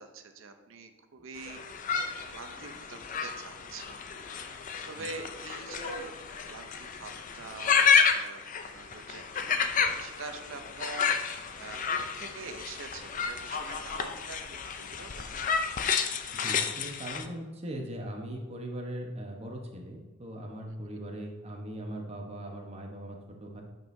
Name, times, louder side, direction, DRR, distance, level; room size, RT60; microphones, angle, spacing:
voice 1, 0.0-1.6 2.3-4.0 4.2-4.6 4.9-15.3, right 4 dB, 65° right, 7 dB, 0.6 m, -45 dB
sound 1, 1.4-17.3, left 6 dB, 40° left, 0.4 m, -31 dB
voice 2, 16.3-23.6, right 1 dB, 30° right, 0 dB, 1.0 m, -40 dB
9.0 x 5.3 x 2.7 m, 1.2 s
head